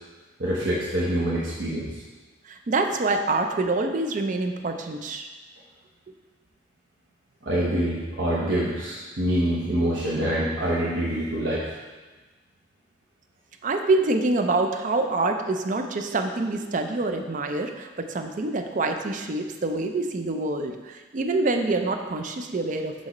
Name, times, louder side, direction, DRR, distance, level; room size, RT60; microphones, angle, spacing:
voice 1, 0.4-2.0 7.4-11.7, right 1 dB, 65° right, -7 dB, 0.9 m, -25 dB
voice 2, 2.5-5.3 13.6-22.9, right 2 dB, 40° right, 5 dB, 0.4 m, -26 dB
6.1 x 5.2 x 3.0 m, 1.3 s
head